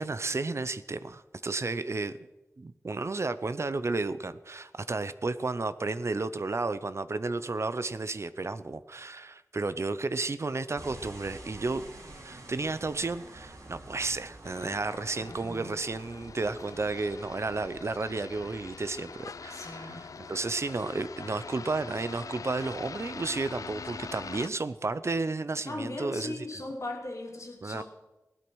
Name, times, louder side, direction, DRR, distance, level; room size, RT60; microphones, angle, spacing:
voice 1, 0.0-2.2 2.6-11.8 12.2-26.3 27.6-27.8, right 3 dB, 55° right, 14 dB, 0.7 m, -32 dB
sound 1, 10.8-20.2, right 2 dB, 70° right, 2.7 m, -49 dB
sound 2, 14.4-24.5, left 5 dB, 85° left, 0.5 m, -43 dB
voice 2, 15.2-15.7 19.5-20.1 25.7-27.8, left 2 dB, 65° left, 2 dB, 2.9 m, -38 dB
16.5 x 12.0 x 6.3 m, 1.0 s
wide cardioid pair, 55°, 6 cm